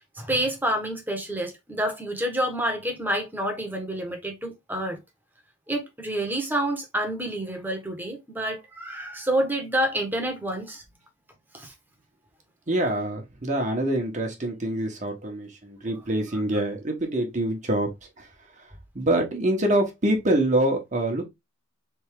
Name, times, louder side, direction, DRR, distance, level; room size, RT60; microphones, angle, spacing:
voice 1, 0.1-5.0 5.7-10.8 11.5-11.7, right 1 dB, 10° right, 1.2 m, -28 dB
voice 2, 12.7-17.9 18.2-18.3 18.6-18.7 18.9-21.2, right 1 dB, 40° right, 1.3 m, -25 dB
3.8 x 3.6 x 3.6 m
head